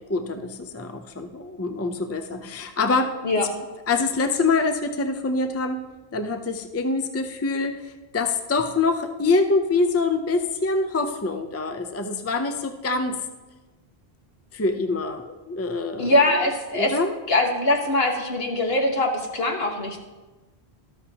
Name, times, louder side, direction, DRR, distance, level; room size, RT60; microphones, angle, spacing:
voice 1, 0.0-3.2 3.9-5.9 6.1-13.2 14.5-17.2, left 3 dB, 20° left, 7 dB, 0.5 m, -25 dB
voice 2, 16.0-16.9 17.3-20.0, left 1 dB, 70° left, 2 dB, 1.6 m, -22 dB
13.0 x 13.0 x 2.9 m, 1.2 s
omnidirectional pair, 1.1 m